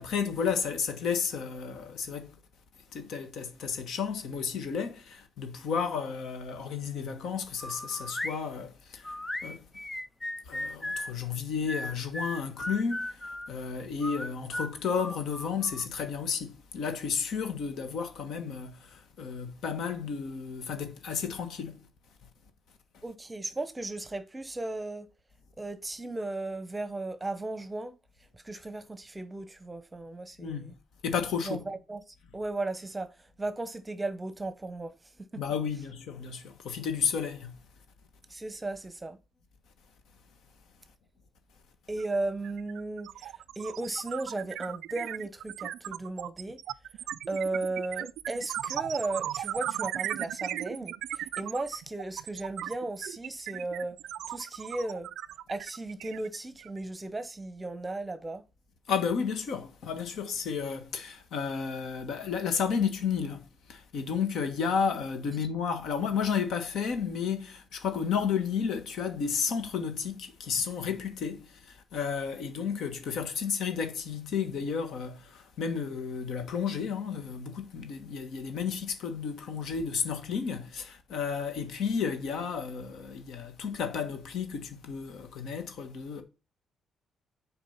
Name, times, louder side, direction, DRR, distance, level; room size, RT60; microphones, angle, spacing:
voice 1, 0.0-2.3 2.9-9.2 9.4-9.6 10.4-21.7 30.4-30.7 31.0-31.6 35.4-37.5 58.9-86.2, left 6 dB, 75° left, 1.4 m, -32 dB
sound 1, 7.6-8.4 9.0-11.1 11.7-13.5 14.0-15.9, left 1 dB, 15° left, 0.3 m, -36 dB
voice 2, 23.0-25.1 25.6-27.9 28.3-30.7 31.5-32.0 32.3-33.1 33.4-34.9 35.3-35.4 38.3-39.2 41.9-46.6 47.3-54.0 54.3-55.1 55.5-58.4, right 2 dB, 15° right, 0.9 m, -35 dB
sound 2, 42.0-42.2 42.4-56.8, right 12 dB, 85° right, 0.3 m, -37 dB
7.4 x 4.5 x 5.5 m
cardioid pair, 90°, 0 cm